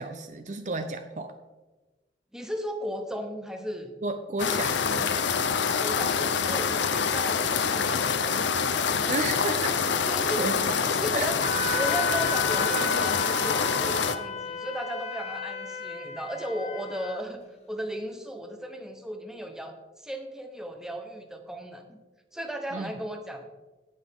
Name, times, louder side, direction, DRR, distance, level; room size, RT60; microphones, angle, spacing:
voice 1, 0.0-1.3 4.0-5.3 9.1-9.8 10.4-10.8 11.1-11.3 22.7-22.9, right 2 dB, 40° right, 8 dB, 0.5 m, -32 dB
voice 2, 2.3-3.9 5.7-8.5 10.1-10.4 10.9-11.4 11.7-22.0 22.3-23.5, equal, 5° right, 4 dB, 1.0 m, -36 dB
sound 1, 4.4-14.2, left 6 dB, 70° left, 0.6 m, -26 dB
Wind instrument woodwind instrument, 11.4-17.2, left 3 dB, 35° left, 1.1 m, -33 dB
17.5 x 6.2 x 3.6 m, 1.2 s
head